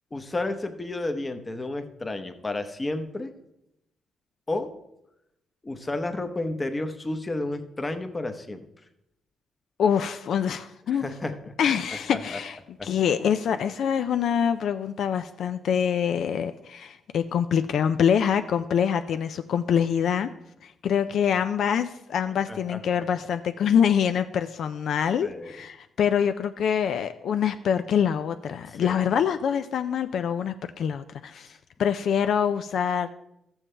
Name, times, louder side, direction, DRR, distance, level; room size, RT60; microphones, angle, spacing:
voice 1, 0.1-3.3 4.5-4.7 5.6-8.6 10.9-11.5 12.1-12.4 12.8-12.9 22.5-22.8 25.2-25.5 28.8-29.0, left 2 dB, 20° left, 7 dB, 0.8 m, -31 dB
voice 2, 9.8-11.1 11.6-20.3 20.6-31.5 31.8-33.1, left 8 dB, 70° left, 9 dB, 0.3 m, -25 dB
13.5 x 7.2 x 3.3 m, 0.84 s
cardioid pair, 110°, 0 cm